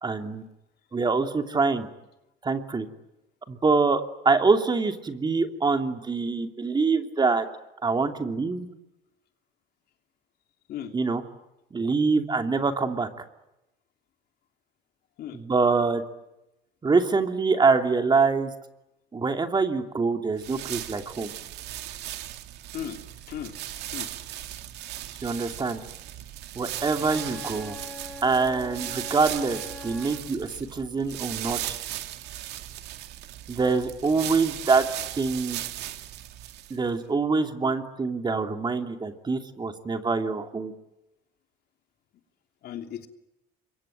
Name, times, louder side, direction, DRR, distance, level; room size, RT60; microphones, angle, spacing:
voice 1, 0.0-0.4 0.9-1.9 2.4-2.9 3.5-7.4 7.8-8.7 10.9-11.2 11.7-13.1 15.3-16.0 16.8-18.5 19.1-21.3 25.2-25.8 26.5-27.8 28.2-31.7 33.5-34.8 35.1-35.6 36.7-40.7, right 4 dB, 25° right, 6 dB, 2.8 m, -25 dB
sound 1, 20.4-36.9, right 13 dB, 85° right, 2.2 m, -37 dB
voice 2, 23.9-24.5 25.1-25.3 42.6-43.1, left 10 dB, 70° left, 5 dB, 3.1 m, -37 dB
Wind instrument woodwind instrument, 26.7-30.3, left 3 dB, ahead, 6.6 m, -42 dB
27.0 x 23.5 x 9.1 m, 0.91 s
cardioid pair, 110°, 17 cm